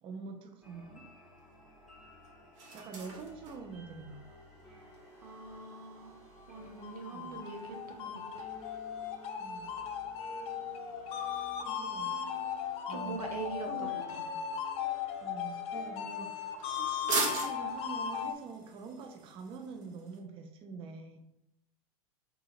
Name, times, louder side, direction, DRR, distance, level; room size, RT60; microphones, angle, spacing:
voice 1, 0.0-1.1 2.7-4.3 7.1-7.4 9.4-9.7 11.6-12.5 12.9-13.2 13.7-13.9 15.2-21.2, right 5 dB, 30° right, 5 dB, 0.4 m, -45 dB
sound 1, 0.6-18.3, equal, ahead, 1.0 m, -54 dB
sound 2, 0.6-20.2, right 3 dB, 55° right, 0.9 m, -45 dB
voice 2, 5.2-6.2 6.5-8.8 12.9-14.3, right 4 dB, 85° right, 3 dB, 0.6 m, -43 dB
sound 3, 6.6-18.3, left 8 dB, 30° left, 0.4 m, -37 dB
3.8 x 2.8 x 2.5 m, 0.83 s
hypercardioid pair, 100°, 19 cm